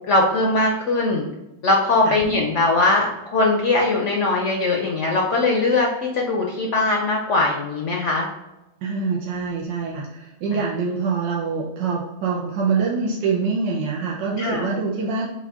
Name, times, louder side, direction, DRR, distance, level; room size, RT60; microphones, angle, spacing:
voice 1, 0.1-1.3 1.6-8.3 10.5-10.6 14.4-14.7, left 2 dB, 65° left, 0 dB, 0.7 m, -20 dB
voice 2, 8.8-15.3, right 4 dB, 85° right, -3 dB, 1.4 m, -25 dB
6.1 x 2.3 x 3.5 m, 0.98 s
omnidirectional pair, 1.9 m